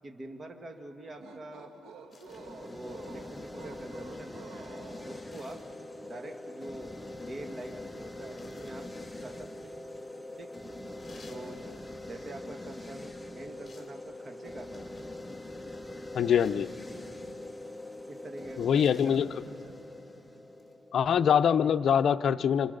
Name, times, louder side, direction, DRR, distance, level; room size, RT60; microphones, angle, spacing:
voice 1, 0.0-1.7 2.4-4.5 5.1-5.6 6.0-6.9 7.2-8.9 9.2-9.7 10.4-10.5 11.3-11.6 12.0-14.9 18.1-19.8, right 1 dB, 35° right, 4 dB, 1.9 m, -45 dB
sound 1, 1.0-5.5, right 4 dB, 75° right, 2.0 m, -50 dB
sound 2, 2.1-2.4 5.3-5.7 8.4-8.8 11.0-11.4 13.6-14.0 14.7-15.1 16.4-16.7 18.7-19.2 20.6-20.7, left 3 dB, 25° left, 4.4 m, -55 dB
sound 3, 2.3-21.3, left 1 dB, 10° left, 0.8 m, -43 dB
voice 2, 16.1-16.7 18.6-19.3 20.9-22.7, left 8 dB, 60° left, 11 dB, 0.6 m, -24 dB
27.5 x 26.5 x 6.8 m, 3.0 s
cardioid pair, 90°, 0 cm